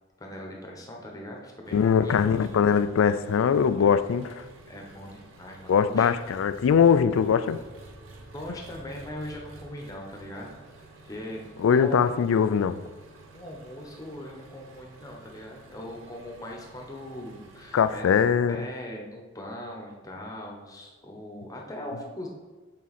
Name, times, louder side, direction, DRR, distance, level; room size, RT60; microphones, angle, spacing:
voice 1, 0.2-2.2 4.7-6.2 8.3-10.6 11.0-12.1 13.3-18.2 18.5-22.3, left 1 dB, 20° left, 1.0 m, -40 dB
Engine, 1.6-18.3, right 2 dB, 80° right, 1.0 m, -50 dB
voice 2, 1.7-4.4 5.7-7.6 11.6-12.8 17.7-18.6, left 7 dB, 80° left, 0.3 m, -21 dB
8.6 x 4.1 x 4.2 m
head